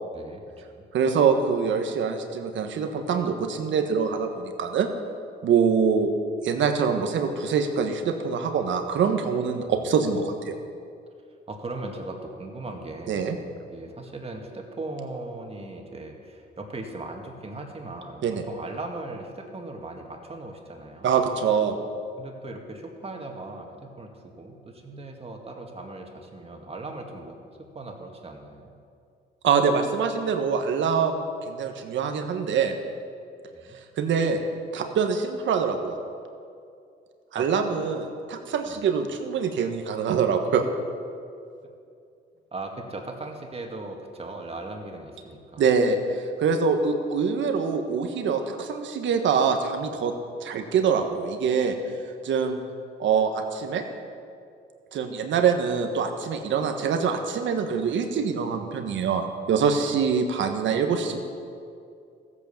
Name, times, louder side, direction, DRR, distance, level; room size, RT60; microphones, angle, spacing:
voice 1, 0.1-0.8 11.5-13.2 13.7-21.3 22.2-28.7 33.5-33.8 37.3-37.5 38.7-38.8 42.5-45.6 59.8-59.9, right 2 dB, 30° right, 2 dB, 2.1 m, -38 dB
voice 2, 0.9-4.9 5.4-6.1 6.4-10.5 13.1-13.4 18.2-18.4 21.0-21.8 29.4-32.7 34.0-34.4 34.7-36.0 37.3-40.6 45.6-50.1 50.4-51.7 52.2-52.6 53.0-53.8 54.9-61.2, right 6 dB, 70° right, 6 dB, 1.5 m, -24 dB
14.5 x 8.5 x 7.2 m, 2.4 s
cardioid pair, 90°, 20 cm